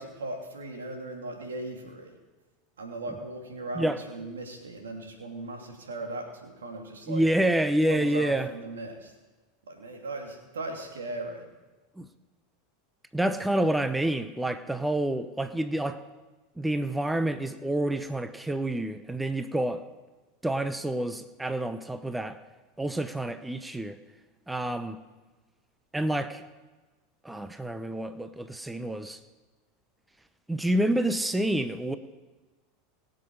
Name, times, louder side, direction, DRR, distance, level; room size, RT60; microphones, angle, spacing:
voice 1, 0.0-2.1 2.8-7.2 7.8-9.1 9.7-11.5, right 2 dB, 80° right, 2 dB, 2.8 m, -38 dB
voice 2, 7.1-8.5 12.0-12.1 13.1-16.0 16.6-19.8 20.4-22.4 22.8-24.0 24.5-25.0 25.9-26.4 27.2-29.2 30.5-32.0, right 1 dB, 5° right, 11 dB, 0.9 m, -28 dB
22.5 x 7.6 x 4.7 m, 1.2 s
hypercardioid pair, 85°, 0 cm